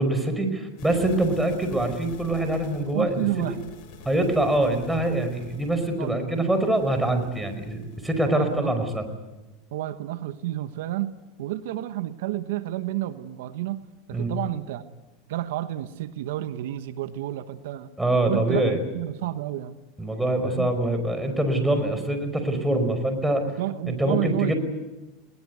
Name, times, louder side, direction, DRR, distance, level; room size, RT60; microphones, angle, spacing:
voice 1, 0.0-3.3 4.0-9.1 14.1-14.3 18.0-18.8 20.0-23.5 23.8-24.5, right 1 dB, 5° right, 7 dB, 5.0 m, -24 dB
sound 1, 0.8-8.8, left 5 dB, 55° left, 6.6 m, -46 dB
voice 2, 2.8-3.6 6.0-6.4 8.3-8.9 9.7-11.1 11.4-13.8 14.1-14.9 15.3-17.9 18.2-19.7 20.4-20.7 23.5-24.5, right 14 dB, 75° right, 11 dB, 1.2 m, -30 dB
20.5 x 20.0 x 9.5 m, 1.1 s
supercardioid pair, 115°, 0 cm